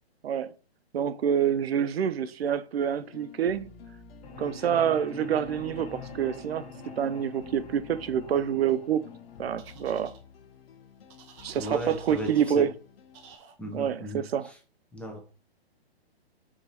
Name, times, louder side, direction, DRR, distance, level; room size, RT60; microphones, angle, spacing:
voice 1, 0.9-3.6 4.4-6.7 7.0-9.0 9.4-10.1 11.4-12.7 13.7-14.5, right 8 dB, 70° right, 0.6 m, -27 dB
sound 1, 2.8-13.4, left 6 dB, 65° left, 0.8 m, -51 dB
sound 2, 4.2-10.2, left 3 dB, 35° left, 0.9 m, -45 dB
sound 3, 9.6-10.2 11.1-12.6 13.1-13.5, right 6 dB, 30° right, 1.2 m, -52 dB
voice 2, 11.5-12.7 13.6-14.5 14.9-15.2, equal, 5° left, 0.9 m, -36 dB
4.8 x 4.7 x 4.2 m
hypercardioid pair, 140°, 32 cm